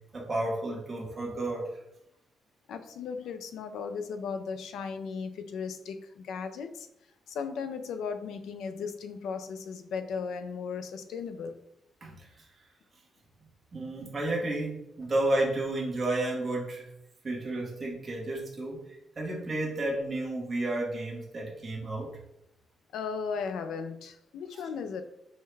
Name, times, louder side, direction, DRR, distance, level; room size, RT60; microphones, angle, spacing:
voice 1, 0.0-1.7 12.0-12.4 13.7-16.9 17.2-18.8 19.2-22.1, right 1 dB, 25° right, -4 dB, 1.0 m, -32 dB
voice 2, 2.7-6.9 7.3-11.6 22.9-25.0, left 5 dB, 75° left, 9 dB, 0.4 m, -36 dB
5.4 x 2.2 x 3.2 m, 0.81 s
cardioid pair, 180°, 0 cm